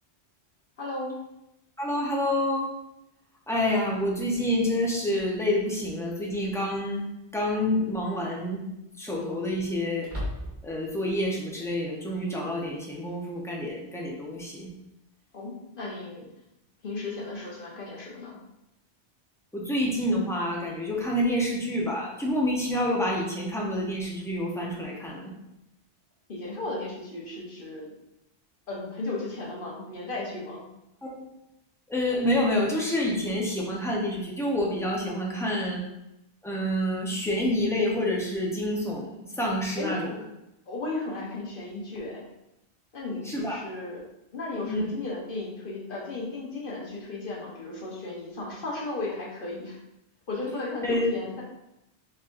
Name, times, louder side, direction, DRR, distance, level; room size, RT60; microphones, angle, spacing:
voice 1, 0.8-1.2 15.3-16.3 16.8-18.4 26.3-27.9 28.7-30.6 39.8-39.9 40.7-42.2 42.9-44.0 44.3-49.8 50.3-51.4, left 2 dB, 50° left, -3 dB, 1.1 m, -35 dB
voice 2, 1.8-2.7 3.5-7.0 7.3-8.6 9.0-10.1 10.6-14.7 19.5-25.3 31.0-31.3 31.9-35.8 36.4-40.2 43.2-43.6 44.7-44.8 50.8-51.1, left 1 dB, 5° left, -3 dB, 0.6 m, -28 dB
sound 1, 7.3-7.7 8.1-8.2 10.0-10.9, left 1 dB, 40° right, 1.5 m, -36 dB
4.5 x 4.2 x 2.5 m, 0.87 s
omnidirectional pair, 1.2 m